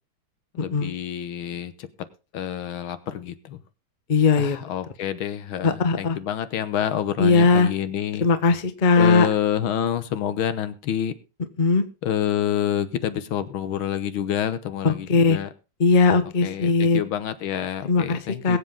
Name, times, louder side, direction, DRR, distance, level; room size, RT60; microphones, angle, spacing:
voice 1, 0.6-1.9 2.3-3.6 4.4-8.3 9.0-11.1 12.0-15.5 16.4-18.6, left 10 dB, 75° left, 12 dB, 1.8 m, -28 dB
voice 2, 4.1-4.6 5.6-6.2 7.2-7.7 8.2-9.3 11.6-11.8 14.8-15.4 15.8-17.0 17.9-18.2 18.4-18.6, left 4 dB, 30° left, 10 dB, 0.9 m, -19 dB
21.5 x 7.7 x 3.7 m, 0.31 s
omnidirectional pair, 2.3 m